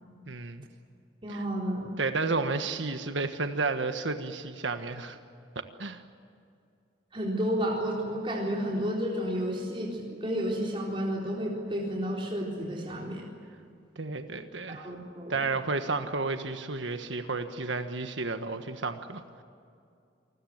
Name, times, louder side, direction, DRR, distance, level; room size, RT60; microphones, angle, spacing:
voice 1, 0.3-0.7 1.3-1.4 2.0-5.2 5.8-6.0 14.0-14.9 15.3-19.2, right 3 dB, 90° right, 7 dB, 1.5 m, -32 dB
voice 2, 1.2-2.0 7.1-13.3 14.7-15.4, equal, 30° right, -3 dB, 4.1 m, -31 dB
28.0 x 21.0 x 8.0 m, 2.4 s
head